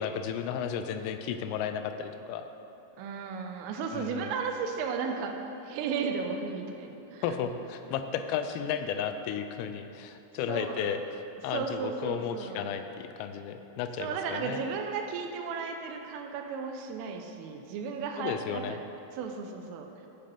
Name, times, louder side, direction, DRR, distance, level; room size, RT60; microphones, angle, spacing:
voice 1, 0.0-2.5 3.9-4.3 7.2-11.0 11.4-14.6 18.2-18.8, left 8 dB, 85° left, 8 dB, 3.3 m, -33 dB
voice 2, 3.0-7.4 7.9-8.0 10.5-11.0 11.5-12.7 14.0-18.9 19.2-19.9, right 5 dB, 80° right, 4 dB, 3.2 m, -35 dB
15.0 x 5.8 x 5.3 m, 2.9 s
omnidirectional pair, 5.9 m